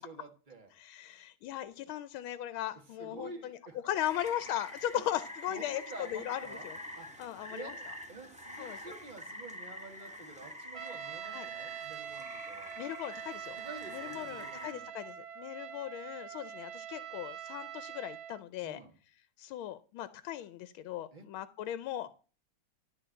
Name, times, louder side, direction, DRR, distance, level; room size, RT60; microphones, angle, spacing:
voice 1, 0.0-0.7 3.0-3.8 4.9-5.1 5.5-6.7 7.0-7.1 7.5-12.7 13.6-14.9 18.6-19.0 21.1-21.2, right 3 dB, 25° right, 4 dB, 1.7 m, -49 dB
voice 2, 0.8-5.8 6.1-6.8 7.2-7.9 8.6-8.8 11.3-11.5 12.8-13.6 13.9-18.8 19.4-22.1, left 12 dB, 90° left, 14 dB, 1.5 m, -38 dB
Rain, 4.0-14.7, left 1 dB, 5° right, 1.4 m, -47 dB
Trumpet, 10.8-18.4, right 10 dB, 80° right, 1.7 m, -44 dB
12.0 x 4.4 x 7.6 m, 0.36 s
omnidirectional pair, 2.2 m